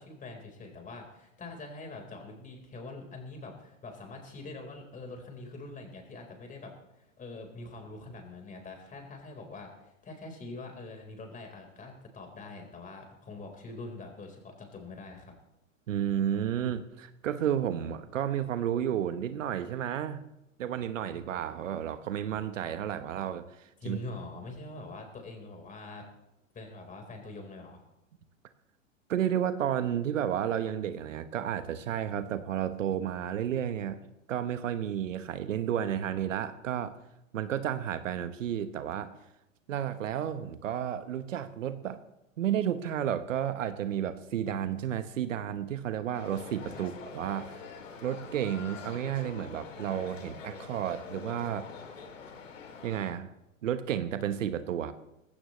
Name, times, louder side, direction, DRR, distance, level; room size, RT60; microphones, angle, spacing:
voice 1, 0.0-15.3 23.8-26.1 26.5-27.8 46.7-46.9, left 2 dB, 20° left, 3 dB, 4.3 m, -44 dB
voice 2, 15.9-20.2 20.6-24.0 29.1-34.0 34.3-36.9 37.3-39.1 39.7-42.0 42.4-47.6 48.0-51.7 52.8-53.3 53.6-54.9, right 10 dB, 70° right, 11 dB, 1.2 m, -32 dB
sound 1, 46.1-53.1, left 5 dB, 75° left, 3.1 m, -45 dB
19.0 x 16.5 x 3.2 m, 0.88 s
hypercardioid pair, 105°, 39 cm